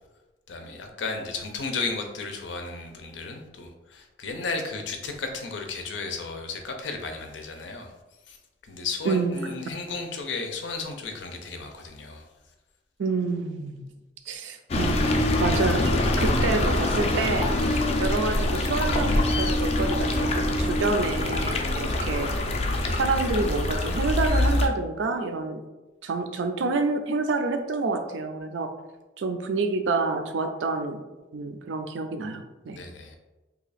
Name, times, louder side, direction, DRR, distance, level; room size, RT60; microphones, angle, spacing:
voice 1, 0.5-7.9 8.3-8.4 8.7-12.2 32.7-33.2, left 4 dB, 85° left, 4 dB, 0.5 m, -34 dB
voice 2, 9.0-9.5 13.0-13.9 14.3-22.3 22.9-25.6 26.0-28.7 29.2-31.0 31.3-32.8, right 3 dB, 85° right, 7 dB, 0.4 m, -28 dB
sound 1, 14.7-24.7, left 1 dB, 35° left, 0.3 m, -24 dB
2.8 x 2.4 x 4.0 m, 1.1 s
head